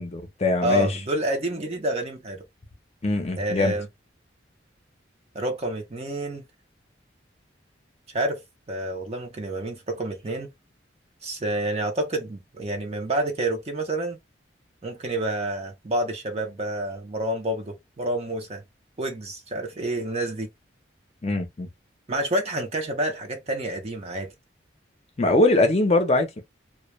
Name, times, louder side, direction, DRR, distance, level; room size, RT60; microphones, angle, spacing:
voice 1, 0.0-1.0 3.0-3.7 21.2-21.7 25.2-26.4, left 2 dB, 35° left, 0.6 m, -22 dB
voice 2, 0.6-2.4 3.4-3.9 5.3-6.4 8.1-8.4 8.7-10.5 11.2-14.2 14.8-18.6 19.0-20.5 22.1-24.3, right 1 dB, 35° right, 0.5 m, -28 dB
2.2 x 2.1 x 2.9 m
head